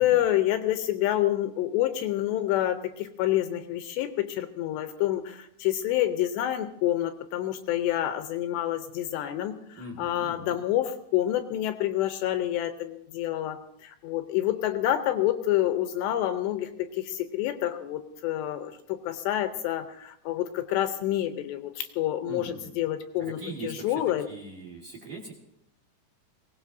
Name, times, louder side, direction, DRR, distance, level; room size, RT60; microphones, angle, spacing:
voice 1, 0.0-24.3, left 13 dB, 80° left, 8 dB, 2.6 m, -28 dB
voice 2, 9.8-10.6 22.3-22.7 23.2-25.3, right 3 dB, 55° right, -2 dB, 2.8 m, -41 dB
23.0 x 18.0 x 2.6 m, 0.76 s
omnidirectional pair, 5.5 m